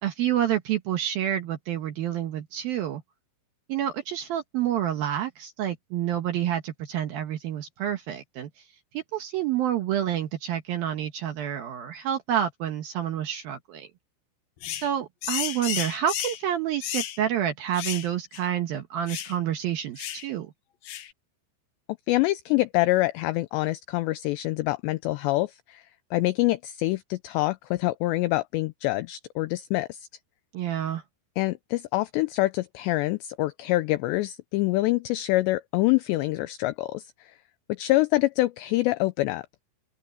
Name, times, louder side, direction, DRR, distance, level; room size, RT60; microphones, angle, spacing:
voice 1, 0.0-3.0 3.7-8.5 8.9-13.9 14.8-20.5 30.5-31.0, right 10 dB, 70° right, 2.3 m, -28 dB
sound 1, 14.6-14.9 15.2-16.4 16.8-17.2 17.7-18.1 18.3-18.5 19.1-19.4 20.0-20.3 20.9-21.1, left 11 dB, 70° left, 2.3 m, -32 dB
voice 2, 22.1-25.8 26.1-30.1 31.4-37.3 37.7-39.4, left 18 dB, 90° left, 2.5 m, -25 dB
open air
omnidirectional pair, 5.6 m